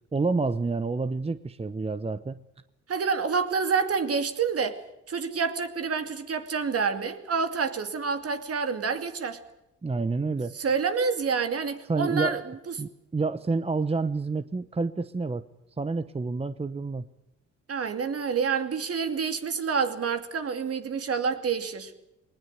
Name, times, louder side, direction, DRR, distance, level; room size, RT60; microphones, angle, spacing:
voice 1, 0.1-2.4 9.8-10.5 11.9-12.4 12.8-15.4 15.8-17.0, right 3 dB, 20° right, 0.9 m, -28 dB
voice 2, 2.9-4.8 5.1-9.4 10.5-12.7 17.7-21.9, right 5 dB, 50° right, 2.5 m, -28 dB
20.0 x 19.5 x 9.3 m
supercardioid pair, 65°, 30 cm